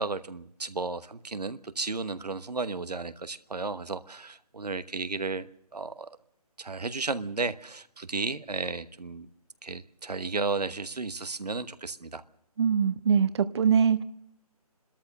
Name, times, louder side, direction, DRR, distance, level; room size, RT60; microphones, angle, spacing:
voice 1, 0.0-5.5 5.7-6.1 6.6-9.3 9.6-12.2, right 3 dB, 90° right, 13 dB, 1.1 m, -33 dB
voice 2, 12.6-14.0, right 7 dB, 45° right, 13 dB, 0.8 m, -23 dB
29.5 x 13.5 x 6.6 m, 0.72 s
figure-of-eight pair, 155°, 20 cm